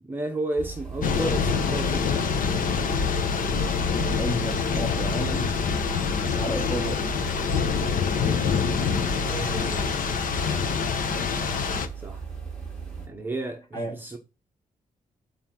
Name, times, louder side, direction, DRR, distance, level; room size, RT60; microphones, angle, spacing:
voice 1, 0.0-2.3 9.3-10.1 12.0-12.2 13.1-14.2, right 2 dB, 15° right, 1.0 m, -33 dB
sound 1, 0.6-13.1, right 6 dB, 5° left, 2.7 m, -37 dB
Thunder / Rain, 1.0-11.9, left 6 dB, 75° left, 1.1 m, -26 dB
voice 2, 4.2-5.5 6.2-7.0 13.7-14.0, right 1 dB, 25° left, 2.8 m, -32 dB
7.2 x 4.5 x 5.8 m
wide cardioid pair, 140°, 14 cm